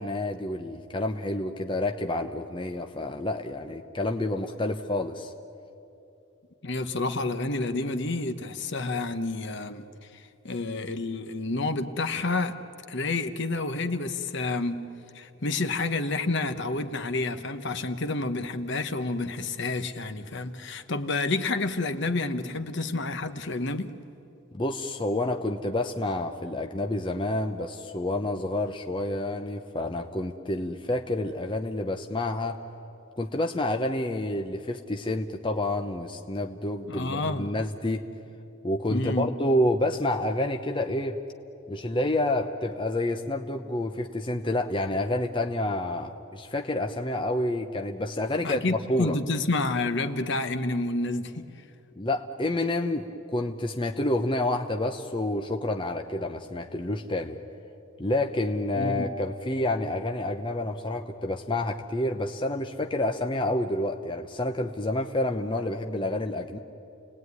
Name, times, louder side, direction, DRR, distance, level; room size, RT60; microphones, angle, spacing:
voice 1, 0.0-5.3 24.5-32.6 33.2-38.0 38.6-41.2 41.7-49.2 52.0-57.4 58.0-66.6, left 1 dB, 20° left, 0.8 m, -29 dB
voice 2, 6.6-9.9 10.1-12.6 12.9-14.8 15.1-23.9 36.9-37.5 38.9-39.3 48.4-51.5 58.8-59.1, left 2 dB, 55° left, 1.1 m, -29 dB
30.0 x 19.0 x 9.6 m
head